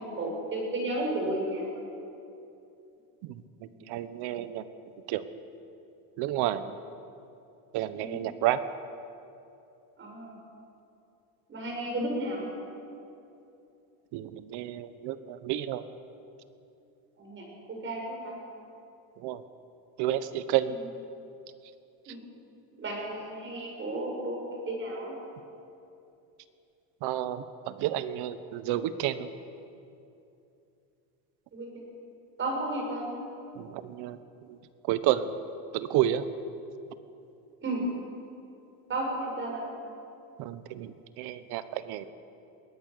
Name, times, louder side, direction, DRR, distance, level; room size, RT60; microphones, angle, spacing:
voice 1, 0.0-1.8 3.7-3.8 8.0-8.2 10.0-10.4 11.5-12.5 17.2-17.5 17.8-18.3 22.1-22.2 22.8-25.1 31.5-31.7 32.4-33.1 37.6-37.9 38.9-39.7, right 1 dB, 25° right, 0 dB, 6.4 m, -33 dB
voice 2, 3.2-4.6 5.1-5.2 6.2-6.7 7.7-8.6 14.1-15.8 19.2-19.4 20.0-20.8 27.0-29.3 33.6-34.2 34.5-34.6 34.9-35.3 35.7-36.3 40.4-42.1, right 12 dB, 65° right, 13 dB, 1.3 m, -30 dB
21.5 x 18.5 x 6.8 m, 2.7 s
cardioid pair, 140°, 43 cm